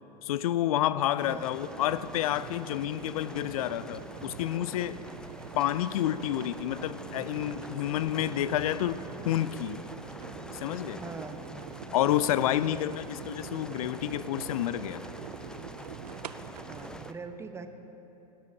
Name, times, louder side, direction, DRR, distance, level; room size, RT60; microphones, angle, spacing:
voice 1, 0.2-5.0 5.5-9.8 10.5-11.0 11.9-15.0, left 12 dB, 60° left, 16 dB, 0.5 m, -29 dB
sound 1, 1.2-17.1, left 2 dB, 5° left, 0.4 m, -46 dB
sound 2, 1.6-17.1, right 9 dB, 75° right, 0.5 m, -45 dB
voice 2, 11.0-11.8 12.7-13.0 16.7-17.7, right 4 dB, 15° right, 7 dB, 1.0 m, -42 dB
19.0 x 18.0 x 2.8 m, 3.0 s
figure-of-eight pair, 90°, 21 cm